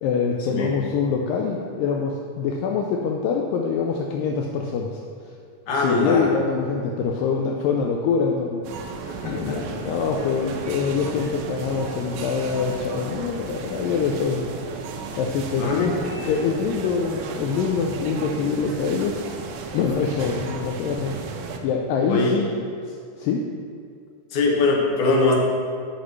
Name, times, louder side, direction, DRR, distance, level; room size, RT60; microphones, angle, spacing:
voice 1, 0.0-5.0 5.7-9.0 9.2-14.4 15.2-19.4 19.7-21.2 21.6-23.4, left 5 dB, 80° left, 1 dB, 2.3 m, -25 dB
voice 2, 5.7-6.3 9.2-9.6 15.6-16.0 22.1-22.4 24.3-25.4, left 3 dB, 65° left, -2 dB, 2.6 m, -21 dB
sound 1, 8.6-21.6, right 5 dB, 80° right, 1.9 m, -34 dB
14.5 x 6.4 x 3.2 m, 2.2 s
omnidirectional pair, 4.0 m